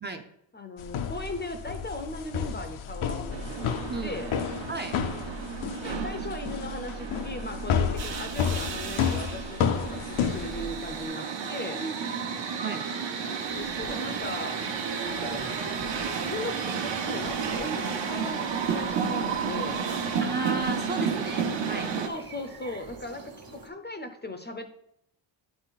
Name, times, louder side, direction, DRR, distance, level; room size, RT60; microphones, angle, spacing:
voice 1, 0.5-4.3 5.8-11.8 13.2-14.6 15.0-15.6 16.2-19.8 22.1-24.7, left 2 dB, 20° left, 7 dB, 0.6 m, -38 dB
sound 1, 0.8-11.0, left 7 dB, 85° left, 0.8 m, -31 dB
voice 2, 3.0-3.3 3.9-4.2 4.7-5.0 11.7-11.9 12.6-12.8 20.2-21.9, right 3 dB, 20° right, 5 dB, 0.6 m, -34 dB
sound 2, 3.3-22.1, right 6 dB, 65° right, 1.1 m, -32 dB
sound 3, 13.5-23.7, right 3 dB, 45° right, 1.3 m, -46 dB
11.0 x 4.0 x 4.0 m, 0.74 s
cardioid pair, 125°, 48 cm